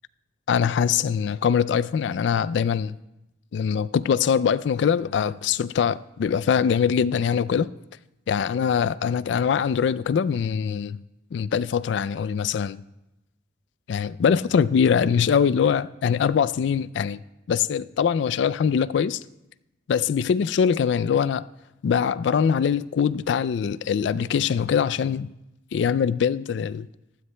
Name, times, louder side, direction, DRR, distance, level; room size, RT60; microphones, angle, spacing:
voice 1, 0.5-3.0 3.5-7.7 8.3-11.0 11.3-12.8 13.9-17.2 17.5-19.2 19.9-21.4 21.8-25.3 25.7-26.9, left 7 dB, 70° left, 0.3 m, -23 dB
15.5 x 12.5 x 2.2 m
head